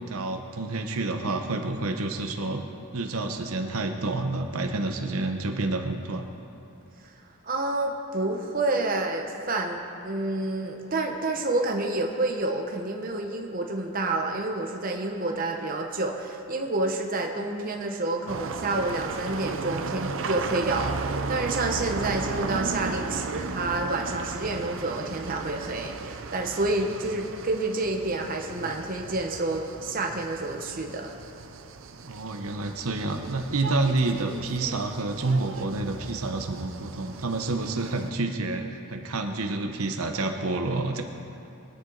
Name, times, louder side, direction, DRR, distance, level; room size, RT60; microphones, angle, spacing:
voice 1, 0.0-2.6 2.9-6.3 32.0-41.0, right 2 dB, 75° right, 4 dB, 1.0 m, -29 dB
voice 2, 7.4-31.1, right 2 dB, 40° right, 2 dB, 1.0 m, -29 dB
sound 1, 18.3-38.1, right 4 dB, 60° right, 0.6 m, -35 dB
22.5 x 9.5 x 4.0 m, 2.8 s
head